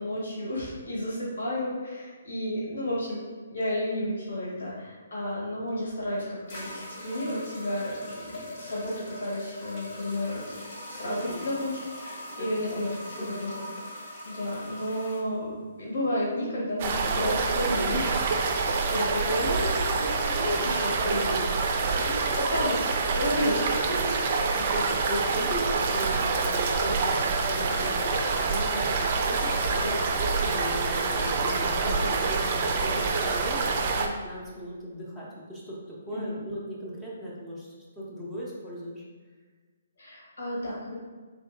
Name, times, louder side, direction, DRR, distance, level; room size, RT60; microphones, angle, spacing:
voice 1, 0.0-3.2 3.5-10.5 10.9-13.6 14.2-21.5 21.7-24.2 31.8-32.2 36.1-36.4 40.0-40.9, left 1 dB, 70° left, -6 dB, 1.3 m, -32 dB
sound 1, 5.7-5.8 6.5-15.2, left 1 dB, 50° left, 1.0 m, -41 dB
voice 2, 11.1-11.5 12.4-12.8 13.2-13.4 24.5-39.0, equal, 10° left, -6 dB, 0.6 m, -37 dB
sound 2, 16.8-34.1, right 4 dB, 45° right, 0.4 m, -26 dB
3.5 x 2.7 x 2.5 m, 1.4 s
hypercardioid pair, 140°, 0 cm